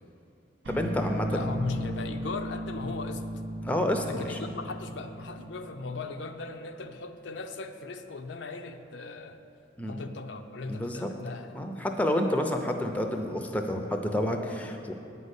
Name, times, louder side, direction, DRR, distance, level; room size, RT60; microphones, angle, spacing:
sound 1, 0.6-6.7, right 1 dB, 85° right, 0.8 m, -36 dB
voice 1, 0.7-1.4 3.6-4.4 9.8-10.1 10.7-11.1 11.5-14.9, left 1 dB, 10° left, 4 dB, 0.6 m, -29 dB
voice 2, 1.3-3.3 4.0-9.4 9.9-11.5, left 3 dB, 75° left, 6 dB, 0.6 m, -38 dB
9.2 x 5.4 x 8.1 m, 2.6 s
head